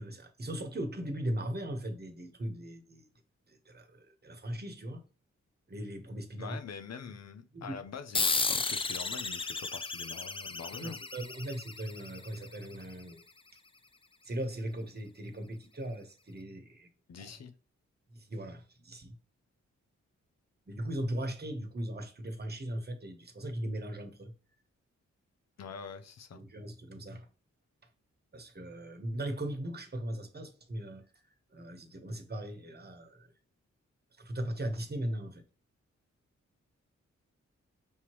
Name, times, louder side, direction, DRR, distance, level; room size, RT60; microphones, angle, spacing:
voice 1, 0.0-3.0 3.5-5.0 5.7-6.6 7.5-7.8 10.8-13.2 14.2-16.9 18.1-19.1 20.7-24.3 26.3-27.3 28.3-31.0 31.5-33.3 34.2-35.4, right 1 dB, 35° right, 1.2 m, -38 dB
voice 2, 6.4-11.0 17.1-17.5 25.6-26.4, left 6 dB, 60° left, 0.7 m, -44 dB
sound 1, 8.1-13.1, left 3 dB, 20° left, 0.4 m, -34 dB
5.4 x 2.9 x 3.0 m
cardioid pair, 50°, 30 cm